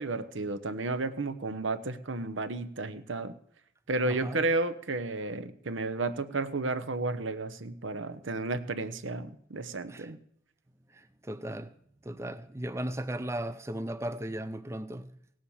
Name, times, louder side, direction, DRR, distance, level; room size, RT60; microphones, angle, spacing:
voice 1, 0.0-3.3 3.9-10.2, right 3 dB, 80° right, 0.9 m, -32 dB
voice 2, 4.0-4.4 9.9-10.1 10.9-11.7 12.0-15.1, right 1 dB, 15° right, 0.5 m, -36 dB
17.5 x 7.6 x 7.1 m
head